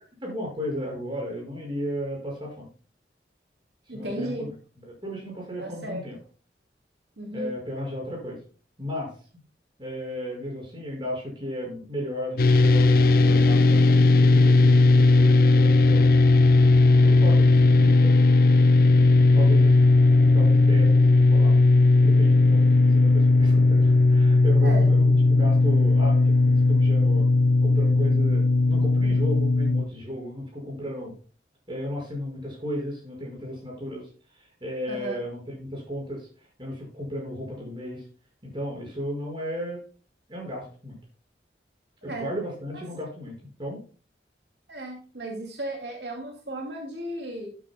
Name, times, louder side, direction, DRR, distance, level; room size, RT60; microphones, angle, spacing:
voice 1, 0.2-2.7 3.9-6.2 7.3-8.4 8.8-9.1 9.8-16.1 17.0-18.1 19.3-19.8 20.3-21.6 22.0-27.3 27.6-31.1 31.7-38.0 38.4-39.8 40.3-41.0 42.0-43.8, equal, 30° right, -1 dB, 5.8 m, -34 dB
voice 2, 3.9-4.5 5.6-6.0 7.2-7.5 24.6-24.9 34.9-35.2 42.1-42.3 42.7-42.8 44.7-47.5, right 1 dB, 75° right, 1 dB, 2.5 m, -35 dB
sound 1, 12.4-29.8, left 3 dB, 55° left, 0.7 m, -17 dB
12.0 x 9.6 x 2.2 m, 0.38 s
head